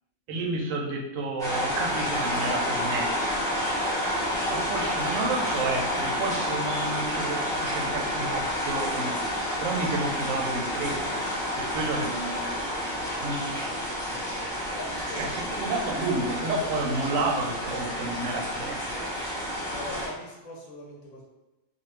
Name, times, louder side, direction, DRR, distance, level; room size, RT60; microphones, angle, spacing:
voice 1, 0.3-3.1 4.5-9.1 9.6-11.2 11.6-12.5 13.2-13.6 14.1-14.2 15.2-15.3 15.6-18.8, right 2 dB, 75° right, -1 dB, 1.0 m, -30 dB
sound 1, 1.4-20.1, equal, 5° left, 0.3 m, -30 dB
voice 2, 14.7-15.4 19.7-21.2, left 2 dB, 85° left, -3 dB, 1.1 m, -41 dB
2.5 x 2.3 x 3.1 m, 1.0 s
omnidirectional pair, 1.4 m